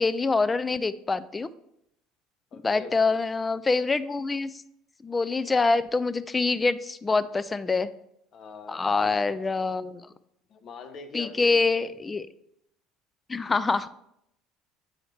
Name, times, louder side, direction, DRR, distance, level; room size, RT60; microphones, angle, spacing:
voice 1, 0.0-1.5 2.6-4.6 5.0-7.9 8.7-10.0 11.1-12.3 13.3-13.9, left 3 dB, 20° left, 15 dB, 0.3 m, -25 dB
voice 2, 2.5-3.2 8.3-9.8 10.5-11.6, left 5 dB, 50° left, 7 dB, 0.8 m, -44 dB
7.7 x 4.9 x 3.1 m, 0.79 s
supercardioid pair, 95°, 0 cm